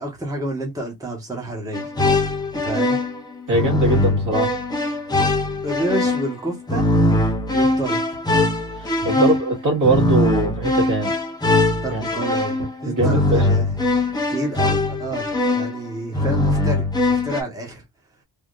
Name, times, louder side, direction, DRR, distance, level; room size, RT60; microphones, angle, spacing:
voice 1, 0.0-2.1 2.6-3.0 5.6-6.8 7.5-8.0 9.0-9.3 11.8-17.8, right 1 dB, 10° right, 1.2 m, -29 dB
sound 1, 1.7-17.4, left 2 dB, 10° left, 0.8 m, -21 dB
voice 2, 3.5-4.5 7.9-8.0 8.8-11.1 11.9-12.2 12.9-13.4, right 2 dB, 50° right, 1.9 m, -21 dB
3.5 x 2.7 x 2.5 m
wide cardioid pair, 135°, 42 cm